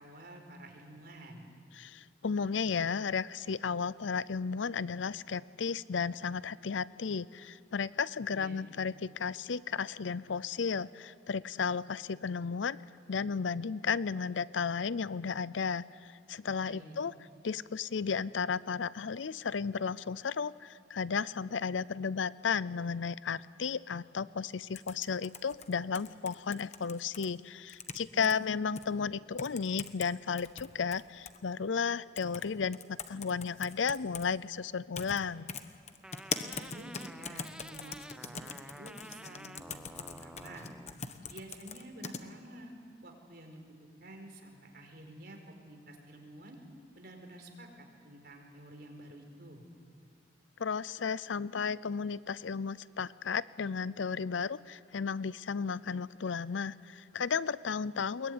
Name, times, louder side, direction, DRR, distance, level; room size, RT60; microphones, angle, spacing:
voice 1, 0.0-1.5 8.3-8.6 16.7-17.0 28.1-28.7 36.5-40.7 41.3-42.7 43.0-43.6 44.0-46.6 46.9-49.6, right 1 dB, 55° right, 3 dB, 4.4 m, -50 dB
voice 2, 1.7-12.8 13.1-17.1 17.4-35.5 50.6-58.3, left 5 dB, 80° left, 19 dB, 0.6 m, -34 dB
sound 1, 24.7-27.3 27.7-28.3 28.8-28.9 29.4-30.1 30.4-31.4 32.2-32.5 32.7-34.3 34.9-35.2 35.5-42.2, left 6 dB, 35° left, 1.1 m, -41 dB
sound 2, 36.0-41.0, right 1 dB, 5° right, 0.6 m, -50 dB
22.0 x 21.0 x 9.5 m, 2.2 s
head